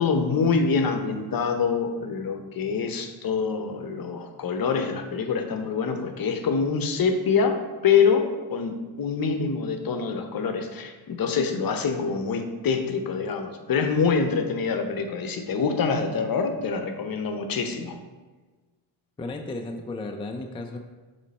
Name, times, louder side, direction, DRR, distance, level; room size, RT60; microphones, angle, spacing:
voice 1, 0.0-18.0, left 5 dB, 45° left, 6 dB, 0.8 m, -25 dB
voice 2, 19.2-20.8, left 2 dB, 10° left, 3 dB, 0.4 m, -34 dB
7.2 x 3.2 x 4.2 m, 1.3 s
supercardioid pair, 70°, 50 cm